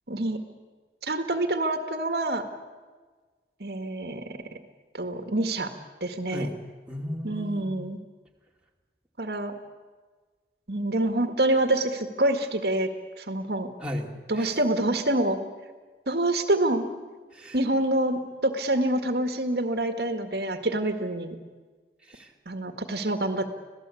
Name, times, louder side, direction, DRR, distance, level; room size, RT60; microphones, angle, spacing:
voice 1, 0.1-0.4 1.0-2.5 3.6-4.4 4.9-5.7 6.0-6.5 7.2-8.0 9.2-9.6 10.7-12.9 13.2-13.7 14.3-15.4 16.1-16.9 17.5-21.4 22.5-23.5, right 1 dB, 65° right, 7 dB, 1.8 m, -26 dB
voice 2, 6.9-7.8 13.8-14.5 17.3-17.6 22.0-22.3, equal, 5° right, -1 dB, 2.5 m, -35 dB
26.0 x 17.5 x 8.4 m, 1.4 s
head